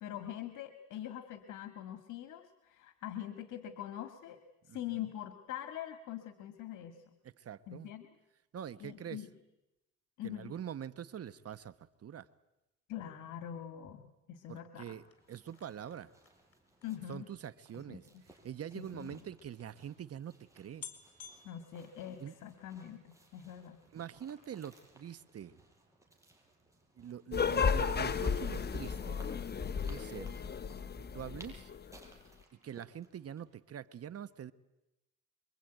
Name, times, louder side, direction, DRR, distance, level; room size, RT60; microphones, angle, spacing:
voice 1, 0.0-4.4 4.7-7.0 7.7-8.0 8.8-9.3 10.2-10.5 12.9-14.9 16.8-17.2 17.8-18.0 18.7-19.2 21.4-23.8, left 11 dB, 80° left, 7 dB, 2.0 m, -43 dB
voice 2, 4.7-5.0 7.2-7.9 8.5-9.2 10.2-11.7 12.0-12.3 14.5-16.1 17.1-20.9 22.2-22.4 23.9-25.6 27.0-29.2 29.9-30.3 31.1-31.7 32.6-34.5, right 9 dB, 50° right, 14 dB, 1.1 m, -44 dB
sound 1, 14.9-18.5 19.3-19.4 19.6-19.7 20.3-20.4 20.8-22.7 23.1-23.5 23.8-23.9, left 8 dB, 50° left, 4.5 m, -54 dB
sound 2, 15.0-33.5, right 1 dB, 10° right, 7.2 m, -62 dB
sound 3, 27.3-32.0, left 6 dB, 35° left, 1.1 m, -34 dB
26.5 x 23.0 x 9.2 m, 0.92 s
cardioid pair, 90°, 30 cm